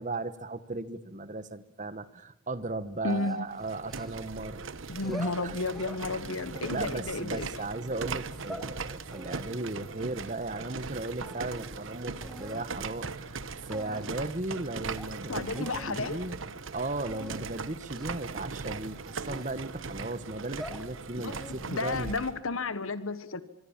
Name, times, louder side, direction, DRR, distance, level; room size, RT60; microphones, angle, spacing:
voice 1, 0.0-4.6 5.0-5.6 6.5-22.1, right 2 dB, 35° right, 1.2 m, -36 dB
voice 2, 3.0-3.5 4.9-7.7 15.3-16.2 21.2-23.4, left 3 dB, 75° left, 1.3 m, -33 dB
sound 1, 3.1-4.4 4.9-6.0 6.5-7.6 8.2-8.7 9.1-10.9 11.1-11.8 12.2-12.6 13.3-13.4 13.7-14.2 14.6-14.7 15.0-15.1 15.5-15.9 16.3-16.5 17.0-17.4 17.9-18.2 18.7-19.9 20.3-20.9 21.3-21.8, equal, ahead, 1.7 m, -46 dB
sound 2, 3.5-22.4, right 4 dB, 65° right, 1.0 m, -39 dB
25.0 x 24.0 x 7.4 m
head